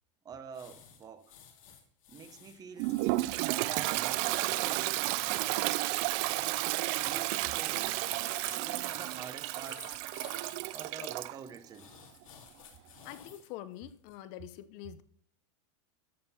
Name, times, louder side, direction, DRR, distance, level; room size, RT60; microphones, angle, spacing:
voice 1, 0.2-1.3 2.1-3.0 3.4-5.0 5.3-5.7 7.0-8.0 8.3-9.9 10.7-11.9, right 6 dB, 20° right, 0.9 m, -47 dB
sound 1, 0.5-10.9 11.7-13.5 13.9-14.2, left 8 dB, 90° left, 2.4 m, -53 dB
Toilet flush, 2.8-11.4, right 20 dB, 45° right, 0.4 m, -32 dB
voice 2, 13.0-15.0, left 13 dB, 45° left, 0.7 m, -45 dB
13.0 x 4.3 x 5.6 m
supercardioid pair, 145°, 17 cm